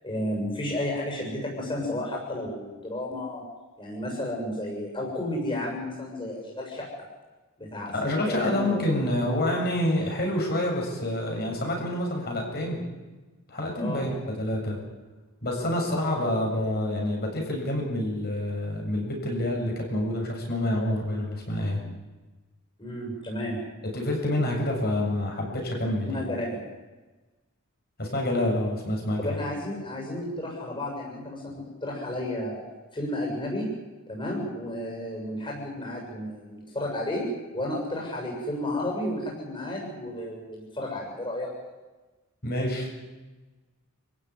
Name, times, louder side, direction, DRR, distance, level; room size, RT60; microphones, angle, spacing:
voice 1, 0.0-3.4 3.8-6.9 7.6-8.8 13.8-14.1 16.1-16.2 22.8-23.6 26.1-26.6 29.2-32.6 32.9-33.7 34.1-41.5, left 1 dB, 25° left, -1 dB, 7.0 m, -32 dB
voice 2, 7.9-12.8 13.5-14.8 15.4-21.8 23.9-26.2 28.0-29.4 42.4-42.9, left 1 dB, 45° left, 0 dB, 7.5 m, -27 dB
28.0 x 15.5 x 9.9 m, 1.2 s
head